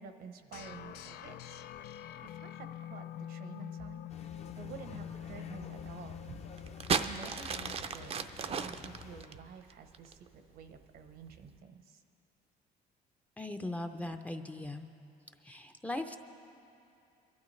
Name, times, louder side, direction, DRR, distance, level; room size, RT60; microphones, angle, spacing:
voice 1, 0.0-1.6 2.2-12.0, right 6 dB, 65° right, 8 dB, 0.9 m, -51 dB
sound 1, 0.5-7.5, left 10 dB, 70° left, 0.5 m, -45 dB
sound 2, 4.1-9.2, left 5 dB, 40° left, 0.8 m, -50 dB
sound 3, 6.6-10.3 11.1-11.4, right 6 dB, 35° right, 0.5 m, -34 dB
voice 2, 13.4-14.9 15.4-16.2, left 2 dB, 10° left, 5 dB, 0.6 m, -39 dB
23.5 x 12.0 x 3.2 m, 2.7 s
cardioid pair, 110°, 17 cm